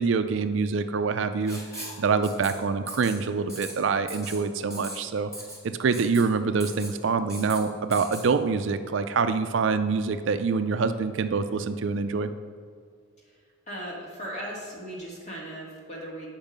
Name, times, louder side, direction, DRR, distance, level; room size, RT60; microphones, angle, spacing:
voice 1, 0.0-1.6 2.0-5.3 5.8-12.3, right 5 dB, 60° right, 9 dB, 0.4 m, -25 dB
Writing, 1.5-2.5 2.9-3.2 3.5-3.7 4.1-4.4 4.7-5.0 5.3-5.6 5.9-6.2 6.6-6.9 7.3-7.6 7.9-8.2, right 1 dB, 15° left, 1.7 m, -39 dB
voice 2, 13.7-16.3, right 1 dB, 35° left, -3 dB, 2.0 m, -37 dB
9.0 x 5.3 x 5.2 m, 2.1 s
head